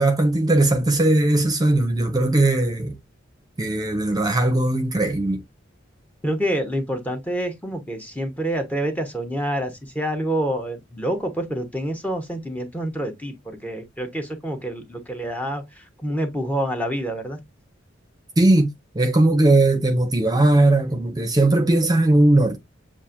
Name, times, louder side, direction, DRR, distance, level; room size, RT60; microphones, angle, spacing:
voice 1, 0.0-2.9 3.6-5.4 18.4-22.6, right 2 dB, 20° right, 0.8 m, -19 dB
voice 2, 6.2-17.4, right 1 dB, 10° left, 0.9 m, -27 dB
7.2 x 2.5 x 2.5 m
head